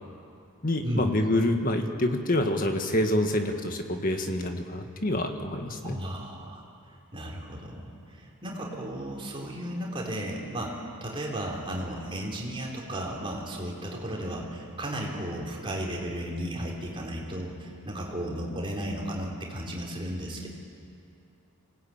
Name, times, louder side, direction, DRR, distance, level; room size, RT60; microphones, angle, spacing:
voice 1, 0.6-6.0, left 1 dB, 40° left, 5 dB, 1.8 m, -27 dB
voice 2, 5.8-7.9 8.2-20.5, right 1 dB, 25° right, -2 dB, 3.9 m, -34 dB
26.0 x 18.0 x 8.9 m, 2.6 s
head